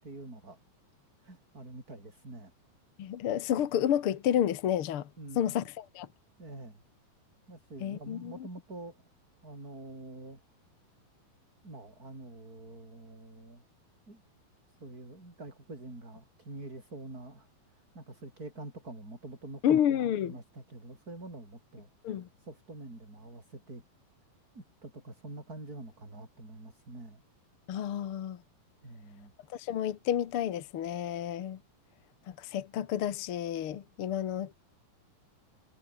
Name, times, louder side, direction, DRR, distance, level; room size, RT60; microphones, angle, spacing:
voice 1, 0.0-0.6 1.2-2.5 5.2-5.6 6.4-6.8 7.5-9.0 9.4-10.4 11.6-13.6 14.1-14.2 14.8-19.6 19.9-21.9 22.4-23.8 24.5-27.2 28.8-29.3, right 2 dB, 20° right, 7.2 m, -46 dB
voice 2, 3.0-5.1 5.3-6.1 7.8-8.3 19.6-20.3 22.0-22.3 27.7-28.4 29.5-31.6 32.3-34.5, left 10 dB, 60° left, 1.5 m, -30 dB
omnidirectional pair, 4.2 m